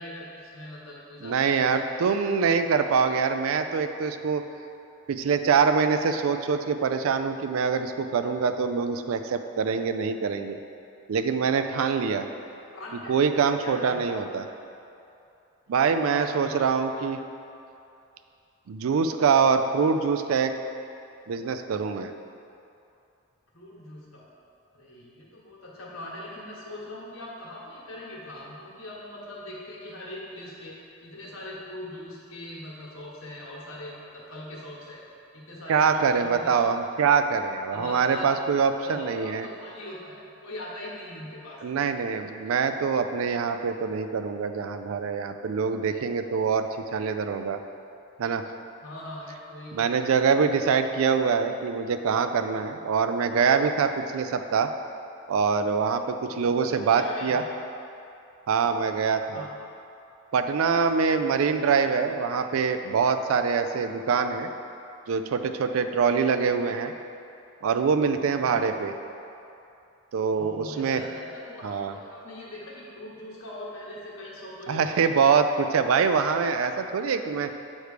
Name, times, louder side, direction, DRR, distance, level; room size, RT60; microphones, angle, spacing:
voice 1, 0.0-1.8 2.1-2.3 12.7-14.0 15.7-16.7 23.5-24.3 24.7-35.1 35.3-36.8 37.7-38.3 38.8-41.6 48.8-50.3 50.7-50.9 56.2-57.6 59.3-59.5 60.9-61.4 68.2-68.6 70.3-75.3, left 1 dB, 85° left, -5 dB, 1.4 m, -41 dB
voice 2, 1.2-4.4 5.1-10.6 11.1-12.3 13.1-14.4 15.7-17.2 18.7-20.5 21.3-22.1 35.7-39.5 41.6-47.6 48.2-48.4 49.7-54.7 55.3-57.4 58.5-59.5 60.3-64.5 65.1-66.9 67.6-68.9 70.1-71.0 71.6-71.9 74.7-77.5, right 5 dB, 80° right, 8 dB, 0.4 m, -24 dB
7.9 x 3.2 x 4.9 m, 2.7 s
head